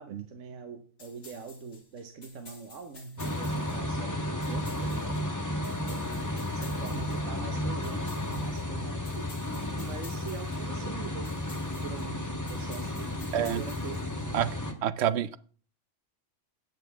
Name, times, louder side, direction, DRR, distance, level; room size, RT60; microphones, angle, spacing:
voice 1, 0.0-5.2 5.9-9.3 9.8-14.8, right 5 dB, 80° right, 7 dB, 1.3 m, -44 dB
sound 1, 1.0-14.5, left 3 dB, 70° left, 2.5 m, -52 dB
sound 2, 3.2-14.7, left 1 dB, 15° left, 1.3 m, -33 dB
voice 2, 14.8-15.4, right 10 dB, 65° right, 16 dB, 0.8 m, -27 dB
13.0 x 9.3 x 3.4 m, 0.43 s
omnidirectional pair, 1.3 m